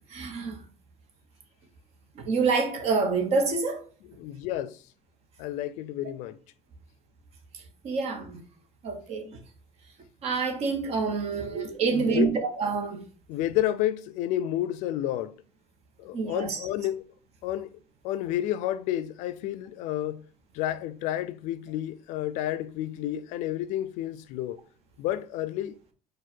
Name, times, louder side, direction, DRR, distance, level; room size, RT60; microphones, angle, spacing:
voice 1, 0.1-0.6 2.2-3.8 7.8-8.4 8.8-9.4 10.2-13.0 16.1-16.7, right 4 dB, 60° right, 1.1 m, -27 dB
voice 2, 4.1-4.8 5.4-6.4 11.3-11.6 11.9-12.3 13.3-15.4 16.0-17.1 17.4-17.8 18.0-20.2 20.5-24.6 25.0-25.8, left 13 dB, 80° left, 0.4 m, -30 dB
4.6 x 2.5 x 4.2 m
cardioid pair, 135°, 12 cm